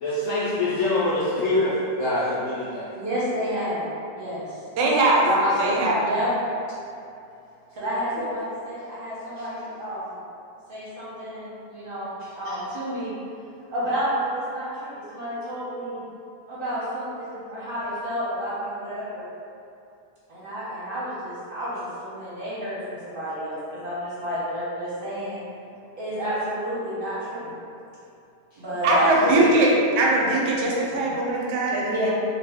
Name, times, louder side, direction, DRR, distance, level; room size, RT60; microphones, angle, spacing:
voice 1, 0.0-2.9 5.2-5.7 28.9-29.5, left 1 dB, 70° left, -10 dB, 0.7 m, -24 dB
voice 2, 2.9-4.6 6.0-6.3 7.7-10.2 10.7-13.1 13.7-16.0 16.5-19.2 20.3-25.4 26.0-27.5 28.6-28.9 31.8-32.1, equal, 40° right, -10 dB, 0.8 m, -30 dB
voice 3, 4.8-5.3 5.6-6.0 28.8-29.7 30.0-32.1, right 2 dB, 85° right, -3 dB, 1.2 m, -21 dB
2.7 x 2.3 x 3.4 m, 2.6 s
omnidirectional pair, 1.8 m